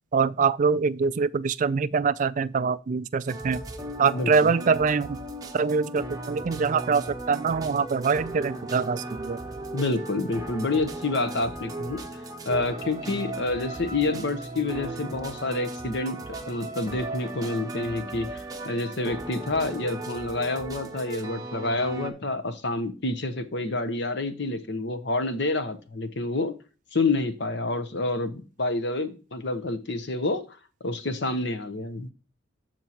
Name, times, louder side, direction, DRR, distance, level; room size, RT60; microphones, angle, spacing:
voice 1, 0.1-3.6 4.0-5.2 5.5-9.4, right 5 dB, 40° right, 0.3 m, -24 dB
sound 1, 3.3-22.1, right 2 dB, 20° right, 0.9 m, -37 dB
voice 2, 4.1-4.5 9.7-12.0 12.5-16.2 16.5-26.5 26.9-30.4 30.8-32.1, left 2 dB, 55° left, 1.0 m, -28 dB
13.5 x 4.5 x 3.0 m
head